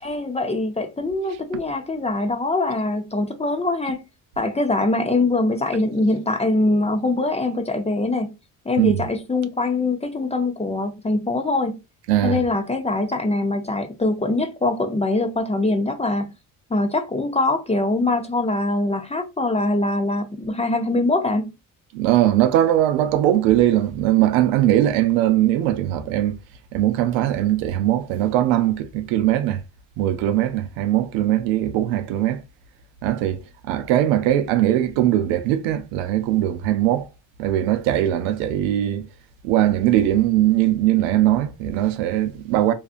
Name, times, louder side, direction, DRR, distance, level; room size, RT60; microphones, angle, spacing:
voice 1, 0.0-4.0 4.4-8.3 8.7-11.8 12.2-16.3 16.7-21.5, left 2 dB, 15° left, 0.5 m, -23 dB
voice 2, 12.1-12.4 21.9-26.4 26.7-29.6 30.0-32.4 33.0-37.1 37.4-39.1 39.4-42.7, right 13 dB, 90° right, 0.5 m, -20 dB
2.7 x 2.4 x 2.4 m
supercardioid pair, 70°, 45 cm